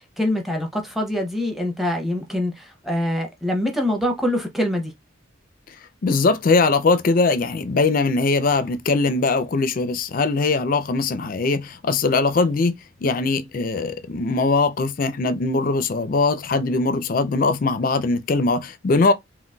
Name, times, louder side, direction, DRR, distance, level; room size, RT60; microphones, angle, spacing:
voice 1, 0.0-4.9, left 1 dB, ahead, 0.6 m, -24 dB
voice 2, 6.0-19.1, left 3 dB, 45° left, 0.4 m, -21 dB
3.8 x 2.3 x 2.2 m
head